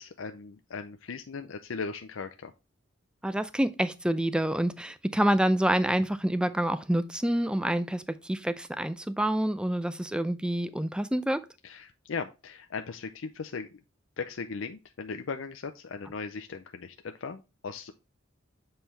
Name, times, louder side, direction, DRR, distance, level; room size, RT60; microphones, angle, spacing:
voice 1, 0.0-2.5 11.6-13.8 14.2-17.9, left 5 dB, 85° left, 0.6 m, -38 dB
voice 2, 3.2-11.4, right 1 dB, 5° right, 0.4 m, -27 dB
7.5 x 4.4 x 3.3 m
head